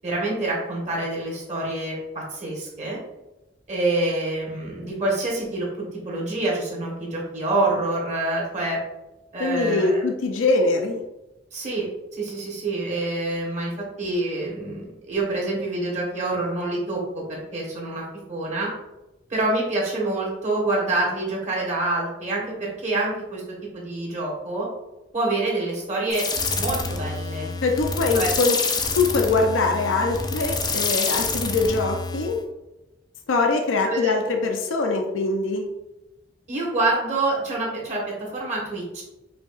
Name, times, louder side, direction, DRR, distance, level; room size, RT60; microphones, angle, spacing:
voice 1, 0.0-3.0 3.7-8.8 9.3-10.0 11.5-11.9 12.1-13.7 14.0-18.7 19.3-23.4 23.7-24.7 25.1-26.2 26.5-27.5 28.1-28.3 33.9-34.2 36.5-39.0, right 2 dB, 40° right, -3 dB, 1.3 m, -26 dB
voice 2, 9.4-11.0 27.6-28.6 29.0-32.4 33.3-35.7, left 3 dB, 85° left, 3 dB, 0.5 m, -23 dB
sound 1, 26.1-32.4, left 4 dB, 20° left, 0.4 m, -27 dB
5.1 x 2.8 x 2.4 m, 0.98 s
head